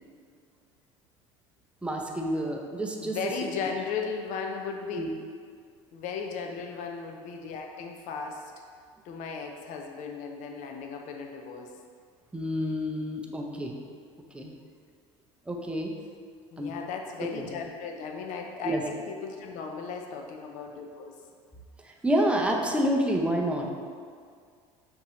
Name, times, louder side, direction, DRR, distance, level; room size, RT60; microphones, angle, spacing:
voice 1, 1.8-3.3 4.9-5.1 12.3-13.8 14.3-14.5 15.5-15.9 16.6-16.7 17.2-17.5 18.6-18.8 22.0-23.7, equal, 5° right, 0 dB, 0.6 m, -28 dB
voice 2, 3.0-5.0 5.9-8.5 9.0-11.7 16.5-21.2, left 5 dB, 50° left, 2 dB, 0.5 m, -36 dB
5.9 x 2.8 x 3.1 m, 2.1 s
hypercardioid pair, 75°, 16 cm